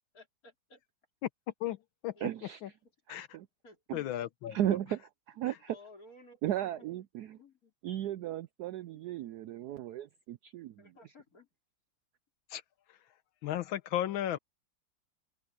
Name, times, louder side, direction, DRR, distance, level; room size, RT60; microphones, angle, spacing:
voice 1, 0.1-0.8 2.1-2.2 3.6-4.1 5.7-6.9 7.4-7.7 8.9-9.0 10.8-11.5, left 2 dB, 45° left, 4.3 m, -56 dB
voice 2, 2.2-2.6 3.1-3.5 3.9-4.0 4.5-5.8 6.4-7.4 7.8-10.9, right 12 dB, 75° right, 0.9 m, -35 dB
voice 3, 3.9-4.8 5.5-5.6 12.5-12.6 13.4-14.4, left 12 dB, 80° left, 1.5 m, -34 dB
open air
omnidirectional pair, 2.2 m